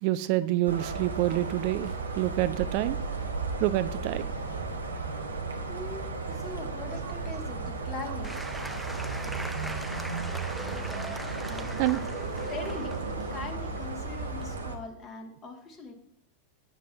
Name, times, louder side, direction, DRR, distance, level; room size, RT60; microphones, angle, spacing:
voice 1, 0.0-3.0 3.6-4.3 11.8-12.0, right 15 dB, 45° right, 14 dB, 0.5 m, -27 dB
sound 1, 0.6-14.8, right 3 dB, 75° right, 1.4 m, -34 dB
voice 2, 5.7-8.4 11.4-11.8 12.5-13.0 13.3-15.9, left 3 dB, 30° left, 5 dB, 2.3 m, -41 dB
Applause / Crowd, 8.2-14.5, right 1 dB, 5° right, 0.8 m, -41 dB
15.5 x 9.4 x 2.8 m, 0.72 s
figure-of-eight pair, 90°, 0 cm